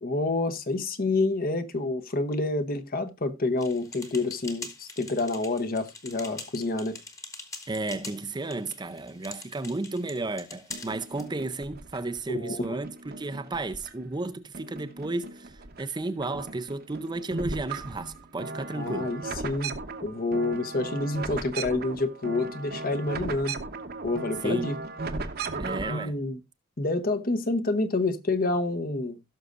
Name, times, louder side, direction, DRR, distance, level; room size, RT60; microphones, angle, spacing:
voice 1, 0.0-7.0 12.4-12.8 18.7-19.7 20.0-23.6 24.0-24.8 25.8-26.4 26.8-29.2, left 2 dB, 40° left, 1.0 m, -28 dB
sound 1, 3.6-11.3, left 3 dB, 15° left, 1.3 m, -44 dB
voice 2, 7.7-15.5 15.8-19.1 24.4-24.7 25.6-26.1, right 2 dB, 20° right, 0.5 m, -33 dB
sound 2, 10.7-12.2 12.6-14.2 14.5-15.8 16.1-26.1, right 3 dB, 45° right, 1.0 m, -37 dB
17.0 x 6.4 x 2.5 m
head